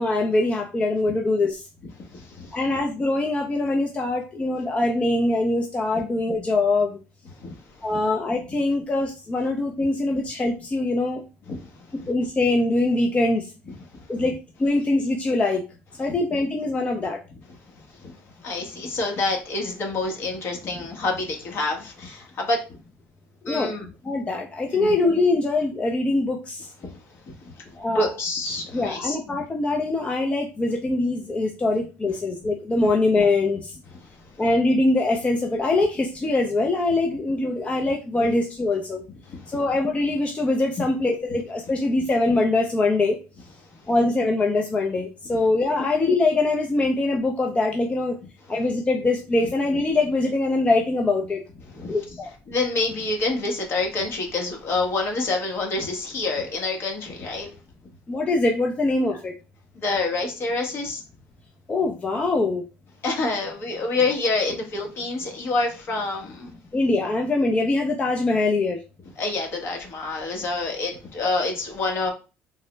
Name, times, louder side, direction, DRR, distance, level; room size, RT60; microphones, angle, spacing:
voice 1, 0.0-1.6 2.5-7.0 7.8-11.2 12.1-13.5 14.1-14.3 14.6-15.6 16.0-17.2 23.4-23.7 24.0-26.7 27.8-28.1 28.7-33.8 34.4-39.0 39.5-43.2 43.9-48.2 48.5-51.4 51.9-52.3 58.1-59.3 61.7-62.6 66.7-68.8, left 2 dB, 25° left, 1 dB, 0.5 m, -23 dB
voice 2, 2.0-2.6 7.4-7.6 7.9-8.0 11.5-11.7 12.0-12.1 14.2-14.3 16.1-16.2 17.9-22.8 23.5-23.9 24.7-24.9 26.8-27.0 27.3-27.4 27.9-29.2 39.3-39.5 51.7-52.0 52.5-57.5 59.7-61.0 63.0-66.5 69.2-72.1, left 3 dB, 50° left, 2 dB, 1.1 m, -27 dB
3.5 x 2.1 x 3.2 m, 0.31 s
supercardioid pair, 95°, 5 cm